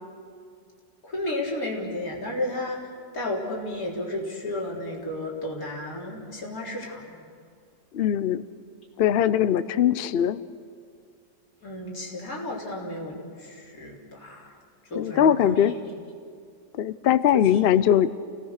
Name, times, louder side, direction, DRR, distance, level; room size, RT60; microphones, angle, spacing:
voice 1, 1.0-7.3 11.6-14.6 14.9-15.7, left 1 dB, 50° left, -3 dB, 4.2 m, -33 dB
voice 2, 7.9-8.5 9.0-10.4 14.9-15.7 16.7-18.1, left 10 dB, 80° left, 14 dB, 0.5 m, -21 dB
29.0 x 18.5 x 6.6 m, 2.2 s
omnidirectional pair, 1.9 m